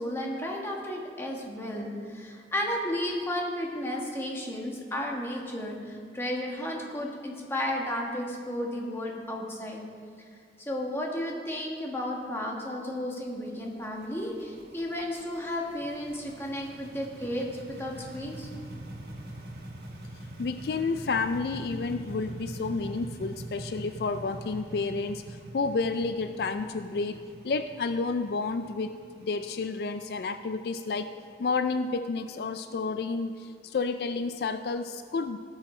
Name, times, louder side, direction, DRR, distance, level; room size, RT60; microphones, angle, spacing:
voice 1, 0.0-9.8 10.6-18.5, left 1 dB, 15° left, -1 dB, 1.3 m, -33 dB
sound 1, 13.1-31.8, right 1 dB, 65° right, 1.5 m, -44 dB
voice 2, 20.4-31.1 31.4-35.4, left 4 dB, 65° left, 9 dB, 0.4 m, -30 dB
17.5 x 6.3 x 4.3 m, 2.2 s
head